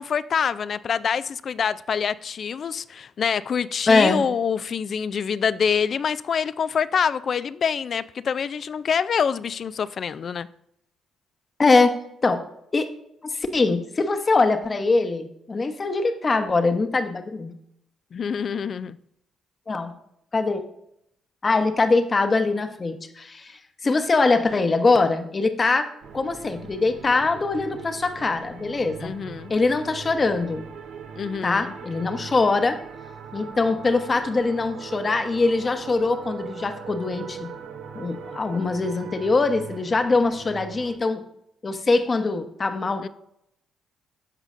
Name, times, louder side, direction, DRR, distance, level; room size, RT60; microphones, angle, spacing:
voice 1, 0.0-10.5 18.1-19.0 29.0-29.5 31.2-31.7 43.0-43.1, left 7 dB, 55° left, 0.3 m, -26 dB
voice 2, 3.9-4.2 11.6-11.9 12.2-12.4 12.7-12.9 13.2-17.5 19.7-19.9 20.3-20.7 21.4-25.9 26.1-29.2 29.5-30.7 31.4-32.8 33.3-37.5 37.9-41.2 41.6-43.1, left 3 dB, 35° left, 0.9 m, -22 dB
sound 1, 26.0-41.0, right 6 dB, 75° right, 0.7 m, -40 dB
14.0 x 5.0 x 2.5 m
supercardioid pair, 60°, 0 cm